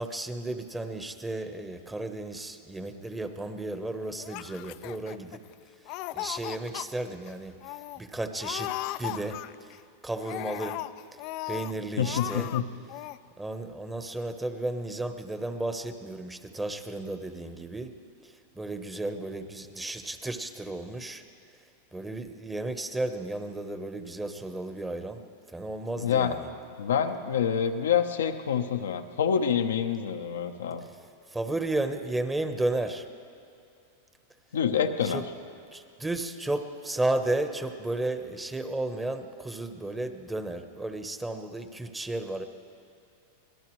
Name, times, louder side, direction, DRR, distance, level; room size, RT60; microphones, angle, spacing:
voice 1, 0.0-5.4 6.1-8.7 9.0-9.7 10.0-10.8 11.5-12.5 13.4-17.9 18.2-21.2 21.9-25.2 25.5-26.5 31.3-33.0 35.0-35.2 35.7-42.5, right 2 dB, 10° right, 8 dB, 1.1 m, -33 dB
Laughter, 4.2-5.5 5.9-6.9 7.3-7.4 7.6-8.0 8.4-9.8 10.2-11.7 12.0-12.6 12.9-13.2, left 17 dB, 50° left, 0.4 m, -36 dB
voice 2, 12.0-12.7 25.9-26.4 26.8-30.8 34.5-35.2, left 8 dB, 85° left, 6 dB, 0.8 m, -27 dB
24.0 x 18.0 x 3.2 m, 2.4 s
hypercardioid pair, 105°, 0 cm